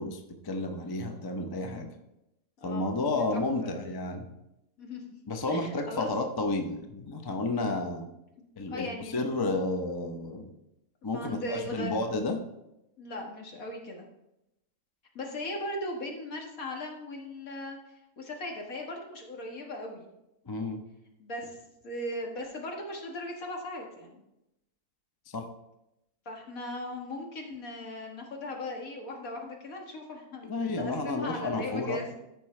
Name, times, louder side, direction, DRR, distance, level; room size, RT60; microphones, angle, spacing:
voice 1, 0.0-1.9 2.6-4.3 5.3-8.1 8.6-8.9 9.1-10.5 11.0-12.4 20.5-20.8 25.3-25.5 30.5-32.0, left 2 dB, 35° left, 5 dB, 0.3 m, -31 dB
voice 2, 2.6-3.9 4.8-5.0 5.5-6.1 8.7-9.2 11.1-12.0 13.0-14.0 15.2-17.8 18.2-20.1 21.2-21.6 21.8-24.2 26.3-32.1, left 1 dB, 60° left, 1 dB, 1.8 m, -38 dB
13.5 x 5.2 x 3.2 m, 0.88 s
omnidirectional pair, 1.7 m